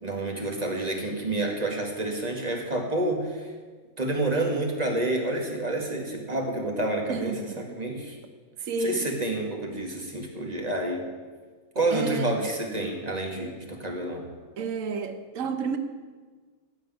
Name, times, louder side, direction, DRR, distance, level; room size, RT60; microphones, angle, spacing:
voice 1, 0.0-3.5 4.0-8.2 8.8-11.1 11.8-14.3, right 2 dB, 25° right, 2.0 m, -29 dB
voice 2, 7.1-7.6 8.0-8.1 8.6-9.1 11.9-12.3 14.6-15.8, right 4 dB, 60° right, 1.3 m, -31 dB
15.5 x 5.3 x 9.3 m
omnidirectional pair, 1.6 m